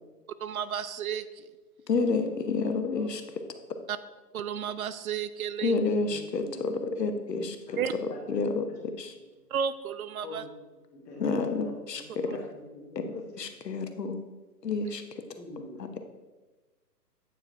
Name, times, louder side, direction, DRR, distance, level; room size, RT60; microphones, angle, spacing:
voice 1, 0.4-1.5 3.9-4.0 4.3-5.8 7.8-7.9 9.5-10.4, right 8 dB, 60° right, 13 dB, 0.5 m, -32 dB
voice 2, 1.9-3.2 5.6-9.1 11.2-12.4 12.9-14.2 14.6-15.2 15.8-15.9, left 4 dB, 80° left, 7 dB, 1.0 m, -30 dB
voice 3, 6.0-6.8 7.7-8.2 8.5-8.6 10.2-10.5 10.9-11.7 12.1-13.4 15.3-15.8, left 2 dB, 15° left, -5 dB, 1.7 m, -45 dB
8.7 x 4.6 x 3.3 m, 1.2 s
figure-of-eight pair, 140°, 49 cm